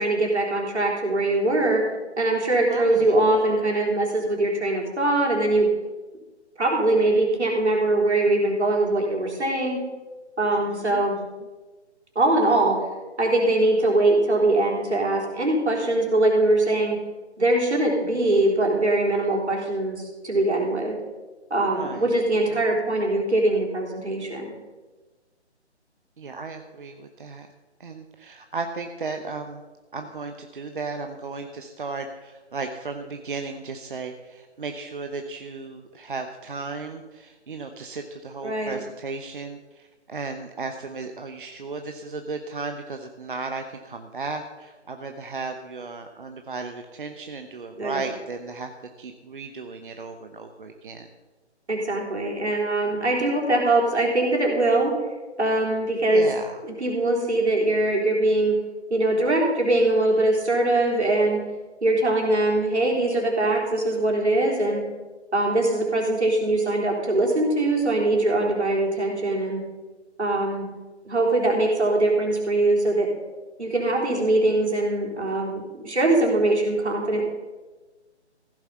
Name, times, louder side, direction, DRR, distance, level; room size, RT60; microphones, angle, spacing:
voice 1, 0.0-1.8 2.2-5.7 6.6-9.8 10.4-11.2 12.2-12.8 13.2-17.0 17.4-21.0 21.5-24.5 38.4-38.8 47.8-48.0 51.7-54.9 55.4-56.3 56.8-58.5 58.9-61.4 61.8-64.8 65.3-69.6 70.2-70.7 71.1-73.1 73.6-77.2, right 2 dB, 70° right, -1 dB, 3.7 m, -22 dB
voice 2, 2.7-3.1 10.5-11.2 21.7-22.1 22.5-22.6 26.2-27.5 27.8-29.6 29.9-48.7 49.0-51.1 56.1-56.6, right 4 dB, 45° right, 6 dB, 0.8 m, -35 dB
15.0 x 6.9 x 5.6 m, 1.2 s
figure-of-eight pair, 145°, 35 cm